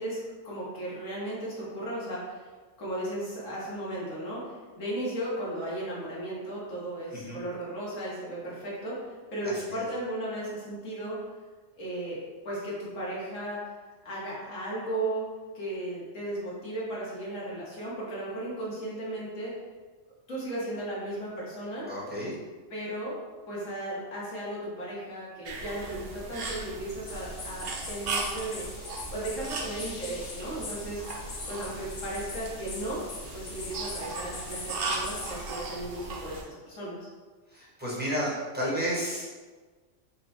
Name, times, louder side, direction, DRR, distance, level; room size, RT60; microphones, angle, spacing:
voice 1, 0.0-2.5 2.8-11.2 11.8-12.2 12.4-13.6 14.0-15.2 15.5-19.5 20.3-21.8 22.7-23.2 23.5-28.7 29.1-33.0 33.3-37.1, right 1 dB, 85° left, -7 dB, 1.7 m, -35 dB
voice 2, 21.9-22.3 37.5-39.3, equal, 10° right, -8 dB, 1.0 m, -31 dB
sound 1, 25.4-36.4, right 3 dB, 60° right, 0.7 m, -37 dB
sound 2, 27.1-35.4, left 3 dB, 45° left, 0.7 m, -42 dB
4.5 x 2.2 x 4.2 m, 1.4 s
omnidirectional pair, 1.3 m